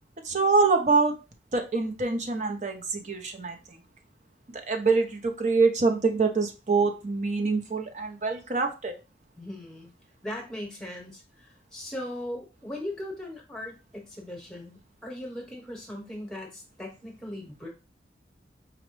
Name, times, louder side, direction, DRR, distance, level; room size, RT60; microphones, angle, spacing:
voice 1, 0.2-1.1 1.5-3.8 4.5-8.9, right 4 dB, 40° right, 5 dB, 0.6 m, -25 dB
voice 2, 9.4-9.9 10.2-17.7, left 1 dB, 5° left, -1 dB, 1.0 m, -39 dB
4.9 x 2.1 x 3.1 m, 0.30 s
head